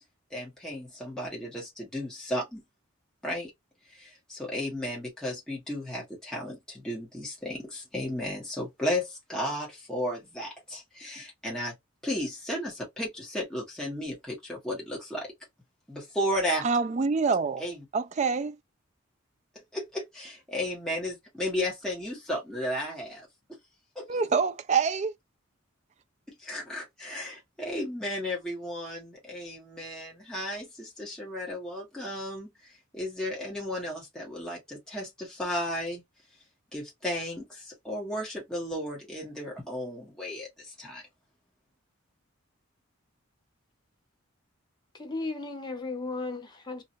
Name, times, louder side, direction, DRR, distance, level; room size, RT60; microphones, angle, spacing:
voice 1, 0.3-2.6 3.2-3.5 3.8-11.7 12.0-15.3 15.9-16.7 17.6-17.8 19.5-23.6 23.9-24.1 26.3-36.0 36.7-41.0, left 1 dB, 5° left, 1.2 m, -34 dB
voice 2, 16.6-17.6 17.9-18.6 24.1-25.1, right 5 dB, 35° right, 0.3 m, -26 dB
voice 3, 44.9-46.8, left 3 dB, 20° left, 0.9 m, -35 dB
2.8 x 2.5 x 2.6 m
head